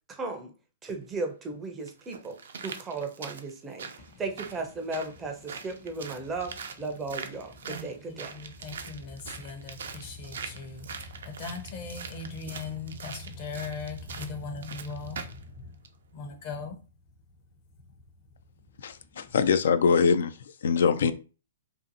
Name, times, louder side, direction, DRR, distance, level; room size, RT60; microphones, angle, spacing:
voice 1, 0.1-0.5 0.8-2.4 2.6-3.9 4.2-6.5 6.8-8.3, right 3 dB, 15° right, 0.5 m, -35 dB
sound 1, 1.0-1.1 1.9-15.4 15.8-15.9, right 6 dB, 75° right, 0.4 m, -43 dB
voice 2, 7.7-15.2 16.1-16.8, left 4 dB, 40° left, 0.7 m, -39 dB
voice 3, 18.8-21.1, left 6 dB, 70° left, 0.3 m, -23 dB
2.6 x 2.4 x 2.6 m
hypercardioid pair, 135°, 0 cm